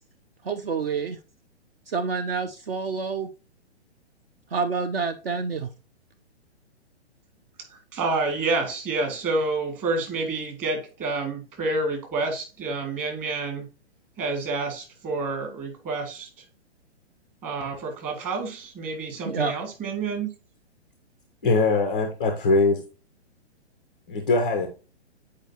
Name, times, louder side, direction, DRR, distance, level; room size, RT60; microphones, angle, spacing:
voice 1, 0.5-1.2 1.9-3.3 4.5-5.7 19.3-19.5, right 5 dB, 55° right, 0.7 m, -27 dB
voice 2, 7.7-13.7 14.2-16.4 17.4-20.3, right 3 dB, 25° right, 2.1 m, -29 dB
voice 3, 21.4-22.8 24.1-24.7, left 3 dB, 10° left, 0.3 m, -21 dB
8.8 x 4.7 x 2.8 m
figure-of-eight pair, 120°, 34 cm